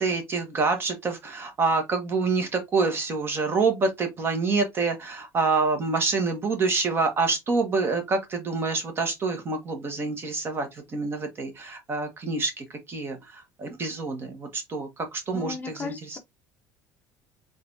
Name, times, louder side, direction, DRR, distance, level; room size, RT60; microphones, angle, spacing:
voice 1, 0.0-16.2, right 4 dB, 30° right, 1.2 m, -27 dB
voice 2, 15.3-16.2, left 4 dB, 25° left, 0.7 m, -36 dB
3.8 x 3.4 x 2.6 m
cardioid pair, 125°, 7 cm